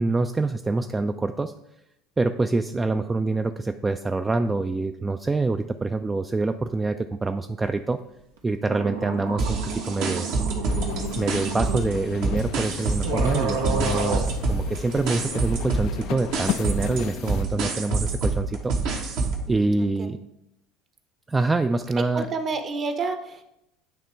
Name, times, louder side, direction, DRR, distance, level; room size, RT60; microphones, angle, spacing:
voice 1, 0.0-1.5 2.2-8.0 8.4-9.6 9.8-10.4 11.2-18.7 19.5-20.2 21.3-22.3, right 3 dB, 20° right, 7 dB, 0.3 m, -26 dB
sound 1, 8.4-8.5 8.6-11.8 12.6-12.7 13.0-14.2, right 5 dB, 90° right, 1.0 m, -30 dB
sound 2, 9.4-11.9 12.2-19.5, right 3 dB, 70° right, 1.2 m, -27 dB
sound 3, 10.7-17.4, left 11 dB, 60° left, 0.3 m, -35 dB
voice 2, 22.1-23.4, right 4 dB, 40° right, 8 dB, 0.9 m, -29 dB
8.9 x 3.0 x 4.5 m, 0.84 s
hypercardioid pair, 75°, 0 cm